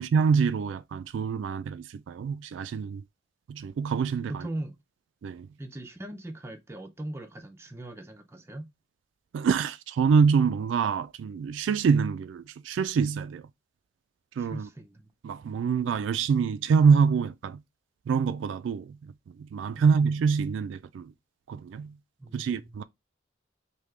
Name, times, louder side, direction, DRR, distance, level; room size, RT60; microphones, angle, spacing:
voice 1, 0.0-3.0 3.5-4.5 5.2-5.5 9.3-13.5 14.4-14.7 15.2-17.6 18.1-19.1 19.4-21.1 21.5-21.9 22.3-22.8, right 6 dB, 80° right, 0.3 m, -25 dB
voice 2, 4.3-4.8 5.6-8.7 14.4-15.4 19.8-19.9 22.2-22.8, right 1 dB, 15° right, 0.5 m, -40 dB
3.6 x 2.7 x 3.2 m
head